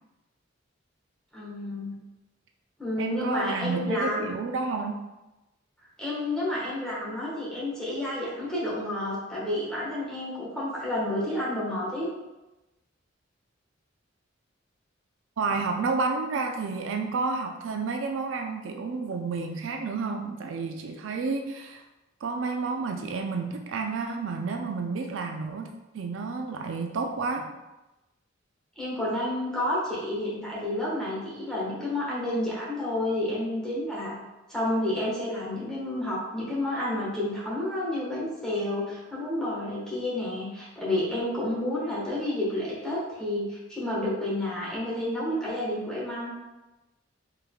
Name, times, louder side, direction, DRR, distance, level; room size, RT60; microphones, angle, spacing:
voice 1, 1.3-1.9 2.8-4.2 6.0-12.1 28.8-34.2 34.5-46.3, left 1 dB, 5° left, -7 dB, 1.3 m, -30 dB
voice 2, 3.0-5.0 15.4-21.8 22.2-25.7 25.9-27.5, right 4 dB, 70° right, 4 dB, 0.4 m, -30 dB
4.6 x 3.5 x 2.3 m, 1.0 s
head